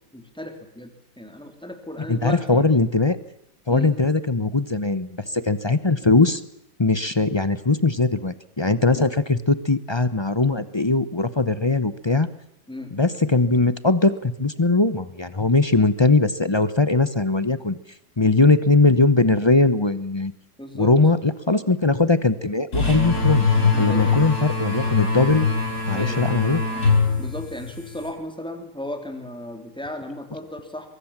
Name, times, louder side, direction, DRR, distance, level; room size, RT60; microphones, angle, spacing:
voice 1, 0.1-2.7 3.7-3.9 12.7-13.0 20.6-20.9 23.7-24.1 25.9-26.2 27.2-30.9, left 1 dB, 5° left, 5 dB, 3.3 m, -35 dB
voice 2, 2.1-3.2 3.7-6.4 6.8-12.3 12.9-17.8 18.2-20.3 20.7-23.5 23.8-25.5 25.9-26.6, left 3 dB, 30° left, 13 dB, 0.5 m, -20 dB
sound 1, 22.7-28.1, left 4 dB, 55° left, 5.5 m, -22 dB
23.5 x 22.5 x 7.4 m, 0.80 s
omnidirectional pair, 2.0 m